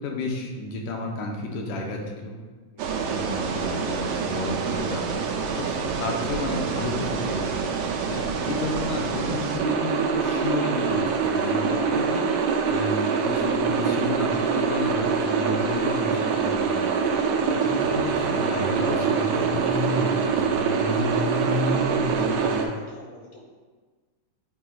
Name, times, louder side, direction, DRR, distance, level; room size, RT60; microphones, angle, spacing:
voice 1, 0.0-2.4 3.1-5.2 5.6-7.6 8.1-12.3 12.7-17.2 17.8-20.0, left 2 dB, 80° left, 0 dB, 2.1 m, -32 dB
voice 2, 2.7-3.1 17.6-17.8 21.8-23.5, left 1 dB, 60° left, -4 dB, 2.2 m, -43 dB
sound 1, 2.8-22.6, right 5 dB, 85° right, 1.3 m, -25 dB
8.6 x 4.8 x 2.3 m, 1.4 s
omnidirectional pair, 3.4 m